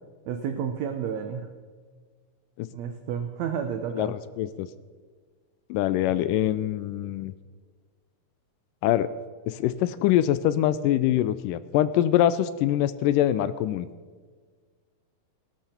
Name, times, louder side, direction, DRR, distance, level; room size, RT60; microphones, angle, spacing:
voice 1, 0.3-1.5 2.7-4.1, right 7 dB, 75° right, 6 dB, 1.6 m, -31 dB
voice 2, 3.9-4.7 5.7-7.3 8.8-9.1 9.5-13.9, left 12 dB, 80° left, 15 dB, 2.1 m, -24 dB
17.5 x 12.5 x 4.4 m, 1.5 s
omnidirectional pair, 4.1 m